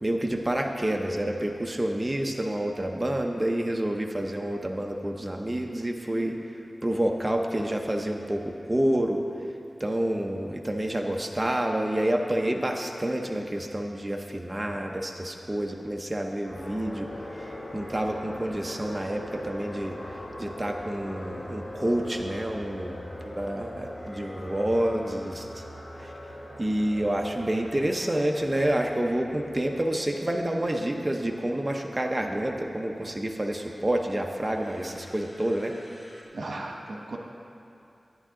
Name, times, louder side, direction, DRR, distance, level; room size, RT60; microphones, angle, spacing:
voice 1, 0.0-6.4 6.8-9.2 9.8-17.1 17.4-20.0 20.4-23.0 23.2-25.6 26.0-26.1 26.6-35.7, right 1 dB, 20° right, 2 dB, 0.7 m, -28 dB
sound 1, 16.4-33.6 34.6-36.2, left 1 dB, 35° left, 1.8 m, -42 dB
voice 2, 36.3-37.2, right 2 dB, 75° right, 1 dB, 1.1 m, -36 dB
14.0 x 9.8 x 3.7 m, 2.7 s
wide cardioid pair, 85°, 0 cm